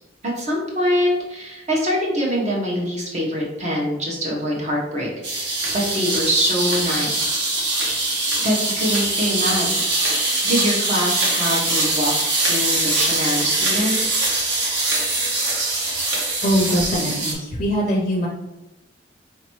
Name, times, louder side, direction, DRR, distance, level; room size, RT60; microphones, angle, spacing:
voice 1, 0.4-7.3 8.4-9.7 10.4-12.1 12.4-14.0, equal, 40° right, -3 dB, 1.0 m, -24 dB
sound 1, 5.2-17.3, right 2 dB, 70° right, 1.0 m, -22 dB
voice 2, 16.4-18.3, equal, 35° left, -2 dB, 0.5 m, -22 dB
4.4 x 2.8 x 3.1 m, 0.94 s
head